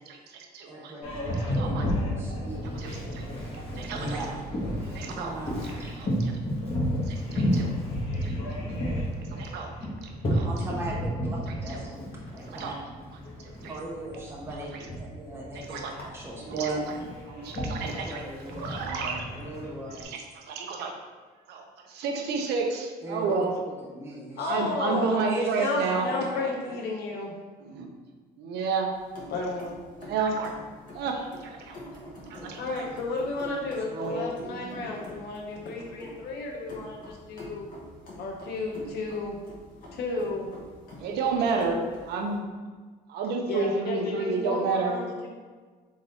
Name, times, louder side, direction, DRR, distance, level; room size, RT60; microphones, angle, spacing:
voice 1, 0.1-0.9 1.4-1.9 2.3-2.4 2.8-3.2 3.5-4.2 4.8-5.3 6.0-6.3 7.1-7.7 8.2-8.4 9.4-9.7 10.0-10.5 12.5-12.7 13.4-13.8 15.7-15.9 16.5-16.8 17.3-18.2 18.6-19.2 20.0-21.0 21.5-23.5 24.4-26.1 27.6-27.9 28.4-28.9 30.0-30.5 30.9-31.8 32.2-32.8 33.9-34.3 41.0-42.5 43.1-45.0, right 4 dB, 75° right, 3 dB, 0.7 m, -31 dB
voice 2, 0.6-3.0 3.5-3.6 3.9-4.4 5.1-6.0 10.4-12.7 13.6-17.1 18.1-18.7 19.3-20.2 23.0-23.4 23.8-26.8 31.1-31.2 31.9-32.8 33.5-33.6 34.0-35.0, right 1 dB, 15° right, -4 dB, 0.9 m, -39 dB
Boat Water vehicle, 1.0-20.0, equal, 35° left, 1.2 m, -32 dB
voice 3, 24.4-25.2 25.6-27.3 29.3-29.9 32.6-37.7 38.2-39.4 39.9-40.5 43.4-45.3, left 3 dB, 75° left, 0 dB, 1.0 m, -33 dB
sound 1, 28.9-42.4, left 1 dB, 55° left, 1.2 m, -46 dB
3.7 x 3.3 x 4.0 m, 1.4 s
cardioid pair, 110°, 17 cm